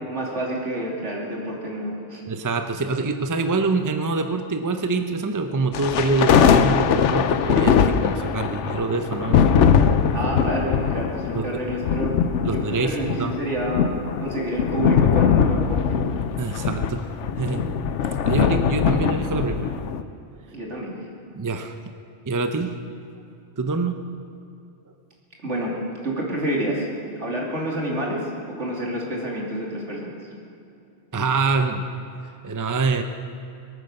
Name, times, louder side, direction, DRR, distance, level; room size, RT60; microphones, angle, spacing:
voice 1, 0.1-2.2 10.1-12.1 12.5-13.9 14.2-16.0 20.5-21.0 25.4-26.9 27.2-28.2 28.6-30.1, right 1 dB, 80° right, -2 dB, 3.2 m, -28 dB
voice 2, 2.3-9.9 11.3-11.6 12.4-13.3 16.4-17.8 18.0-19.7 21.3-21.8 22.3-22.7 23.6-24.0 31.1-31.8 32.4-33.0, right 3 dB, 20° right, 7 dB, 0.7 m, -25 dB
sound 1, 5.7-20.0, left 7 dB, 90° left, 1.0 m, -21 dB
22.0 x 9.2 x 6.6 m, 2.6 s
omnidirectional pair, 1.2 m